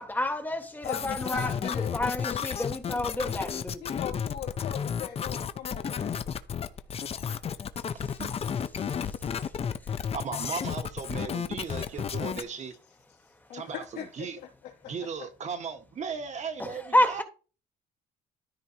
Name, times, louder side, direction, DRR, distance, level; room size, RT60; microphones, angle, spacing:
voice 1, 0.0-3.8 16.6-17.2, left 1 dB, 10° left, 1.6 m, -29 dB
voice 2, 0.8-3.1 3.8-6.1 13.5-15.3, left 10 dB, 80° left, 2.9 m, -40 dB
sound 1, 0.8-12.4, left 7 dB, 35° left, 0.7 m, -32 dB
voice 3, 10.1-12.7 13.5-14.4 14.9-17.2, right 6 dB, 45° right, 1.6 m, -37 dB
13.5 x 4.5 x 2.9 m
cardioid pair, 110°, 17 cm